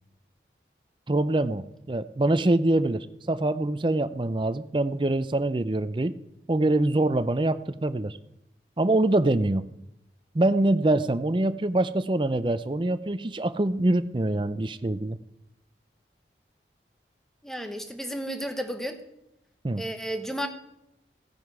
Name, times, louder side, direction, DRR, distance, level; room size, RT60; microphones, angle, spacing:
voice 1, 1.1-6.2 6.5-8.2 8.8-9.6 10.3-15.2 19.6-19.8, right 2 dB, 25° right, 13 dB, 0.5 m, -24 dB
voice 2, 17.4-19.0 19.8-20.5, equal, ahead, 6 dB, 1.0 m, -32 dB
16.0 x 10.5 x 4.8 m, 0.85 s
head